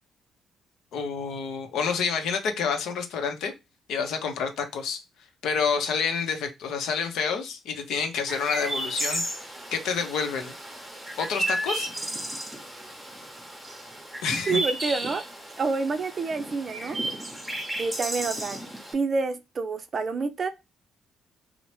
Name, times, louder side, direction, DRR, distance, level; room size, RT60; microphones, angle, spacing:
voice 1, 0.9-3.5 3.9-5.0 5.4-9.2 9.7-10.5 11.2-11.9 14.2-14.6, left 6 dB, 80° left, 0.6 m, -28 dB
Chirp tweet, 8.3-18.9, right 1 dB, 5° right, 0.7 m, -33 dB
voice 2, 14.5-15.2 15.6-17.0 17.8-18.6 18.9-20.5, right 4 dB, 45° right, 0.4 m, -28 dB
2.8 x 2.0 x 3.0 m
cardioid pair, 90°, 0 cm